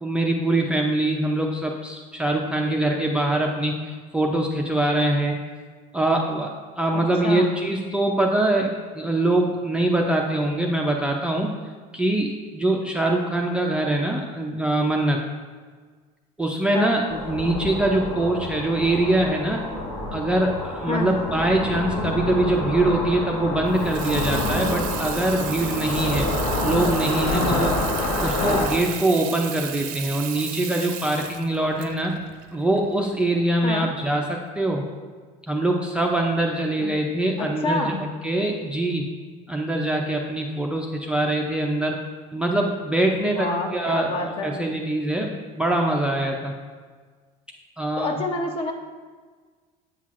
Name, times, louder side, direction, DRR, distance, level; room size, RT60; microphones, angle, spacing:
voice 1, 0.0-5.4 5.9-11.5 11.9-15.2 16.4-19.6 20.1-26.3 26.6-27.8 28.2-32.1 32.5-34.8 35.5-39.1 39.5-42.0 42.3-46.5 47.8-48.2, right 1 dB, 5° right, 0 dB, 0.4 m, -23 dB
voice 2, 6.9-7.5 16.7-17.0 20.9-21.1 33.6-33.9 36.8-36.9 37.4-38.1 43.3-44.6 48.0-48.7, left 2 dB, 35° left, 3 dB, 0.7 m, -28 dB
sound 1, 17.1-28.7, left 2 dB, 90° left, 1.1 m, -27 dB
Water tap faucet / Sink (filling or washing), 23.7-33.3, right 11 dB, 60° right, 0.5 m, -35 dB
8.4 x 5.6 x 2.4 m, 1.5 s
cardioid pair, 145°, 16 cm